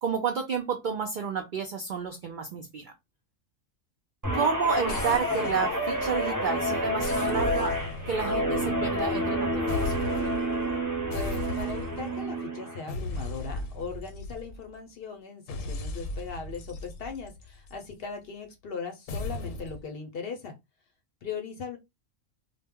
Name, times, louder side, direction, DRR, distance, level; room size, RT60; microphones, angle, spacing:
voice 1, 0.0-2.9 4.3-10.0, right 6 dB, 70° right, 0.4 m, -30 dB
Guitar, 4.2-12.8 13.2-13.5, equal, 20° right, 0.6 m, -29 dB
sound 1, 4.9-6.5 7.0-9.4 9.7-10.5 11.1-12.1 12.9-14.8 15.5-17.9 19.1-19.8, left 2 dB, 80° left, 1.0 m, -37 dB
voice 2, 11.1-20.6 21.2-21.8, left 5 dB, 60° left, 0.7 m, -39 dB
2.2 x 2.0 x 3.5 m
omnidirectional pair, 1.3 m